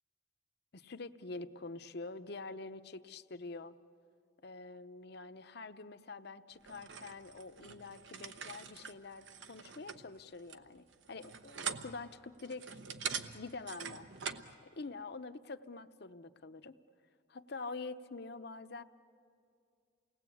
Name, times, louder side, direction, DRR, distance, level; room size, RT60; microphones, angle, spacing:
voice 1, 0.7-3.7 4.4-12.8 13.3-14.1 14.7-16.7 17.3-18.8, left 3 dB, 60° left, 10 dB, 0.8 m, -46 dB
sound 1, 6.6-14.5, right 7 dB, 85° right, 1.0 m, -44 dB
29.0 x 19.0 x 8.5 m, 2.3 s
head